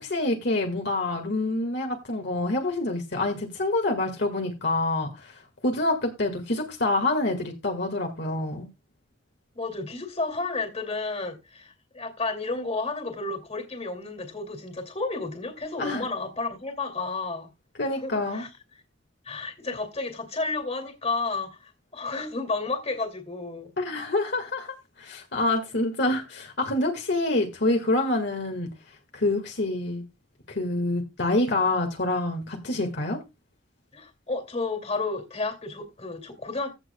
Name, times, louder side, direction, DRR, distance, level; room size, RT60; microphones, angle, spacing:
voice 1, 0.0-5.3 5.6-8.7 15.8-16.1 17.8-18.5 23.8-24.7 25.0-28.7 29.1-30.0 30.5-33.2, left 2 dB, 60° left, 1.9 m, -26 dB
voice 2, 9.5-17.5 18.0-18.5 19.2-23.7 33.9-36.7, left 3 dB, 35° left, 2.5 m, -32 dB
15.5 x 7.5 x 2.3 m
head